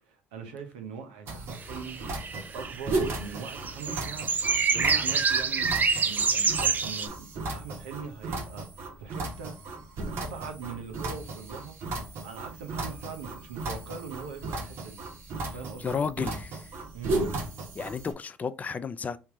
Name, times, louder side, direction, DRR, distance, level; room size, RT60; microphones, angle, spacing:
voice 1, 0.1-2.0 2.3-5.7 6.0-8.7 9.0-9.6 10.2-11.7 12.2-15.0 15.5-16.0 16.9-17.4, right 6 dB, 85° right, 0.9 m, -41 dB
sound 1, 1.3-18.1, right 2 dB, 60° right, 1.1 m, -35 dB
sound 2, 1.5-1.6 1.8-7.1, right 5 dB, 40° right, 0.6 m, -27 dB
voice 2, 15.8-16.7 17.8-19.2, left 6 dB, 35° left, 0.4 m, -32 dB
3.6 x 2.8 x 3.6 m
hypercardioid pair, 70°, 5 cm